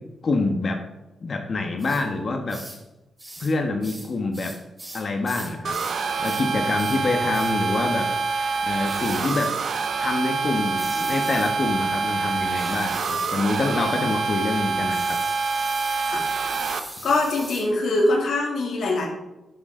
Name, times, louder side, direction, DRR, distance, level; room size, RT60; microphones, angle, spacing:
voice 1, 0.2-0.8 1.2-2.6 3.4-4.5 4.9-8.1 8.6-9.5 10.0-15.2, left 3 dB, 50° left, 4 dB, 1.4 m, -26 dB
sound 1, 1.8-2.0 2.5-2.8 3.2-3.5 3.8-6.0 6.2-6.5 6.8-7.0 7.3-7.6 8.8-9.5 10.8-11.6 12.5-13.4 14.9-17.7, right 1 dB, 15° right, 3.5 m, -40 dB
sound 2, 5.6-16.8, right 4 dB, 65° right, 0.9 m, -26 dB
voice 2, 17.0-19.1, left 2 dB, 75° left, -1 dB, 2.9 m, -23 dB
13.0 x 7.2 x 3.9 m, 0.97 s
cardioid pair, 75°, 0 cm